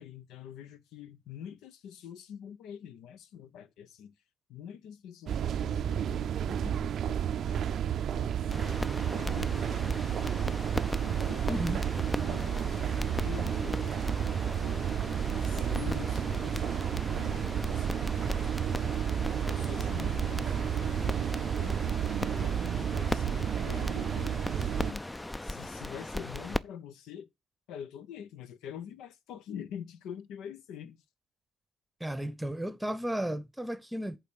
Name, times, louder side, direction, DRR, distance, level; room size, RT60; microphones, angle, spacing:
voice 1, 0.0-4.1 4.5-8.8 9.0-10.3 11.0-11.8 12.2-14.8 15.2-19.0 19.5-22.0 22.3-25.1 25.4-27.3 27.7-31.0, left 9 dB, 70° left, 0.7 m, -46 dB
sound 1, 5.3-24.9, right 9 dB, 60° right, 0.4 m, -31 dB
sound 2, 8.5-26.6, left 1 dB, 15° left, 0.4 m, -38 dB
voice 2, 11.5-11.9 32.0-34.2, right 1 dB, 5° right, 1.0 m, -34 dB
8.2 x 3.6 x 6.7 m
hypercardioid pair, 55°, 0 cm